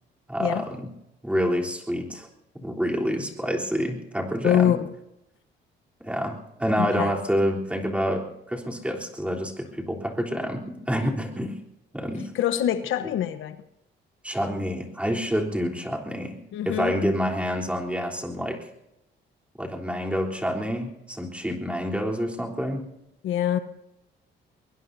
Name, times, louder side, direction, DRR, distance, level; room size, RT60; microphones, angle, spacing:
voice 1, 0.3-0.9 1.2-2.3 2.6-4.7 6.0-11.5 11.9-12.3 14.2-16.4 16.7-18.7 19.6-22.8, equal, 5° right, 0 dB, 3.5 m, -28 dB
voice 2, 4.4-4.9 6.8-7.2 12.3-13.6 16.5-17.0 23.2-23.6, left 10 dB, 80° left, 10 dB, 1.1 m, -24 dB
23.0 x 21.5 x 2.7 m, 0.86 s
cardioid pair, 90°, 20 cm